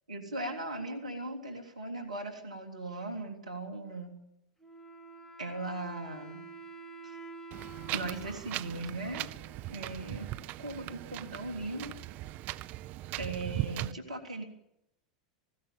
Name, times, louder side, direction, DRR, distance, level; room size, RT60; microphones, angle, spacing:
voice 1, 0.1-4.2 5.4-6.4 7.0-7.2 7.9-9.3 9.7-11.9 13.2-14.4, right 2 dB, 85° right, 3 dB, 3.3 m, -38 dB
Wind instrument woodwind instrument, 4.6-10.1, right 4 dB, 15° left, 2.9 m, -49 dB
Wind, 7.5-13.9, right 16 dB, 45° right, 0.8 m, -39 dB
20.5 x 15.5 x 9.2 m, 0.83 s
hypercardioid pair, 90°, 4 cm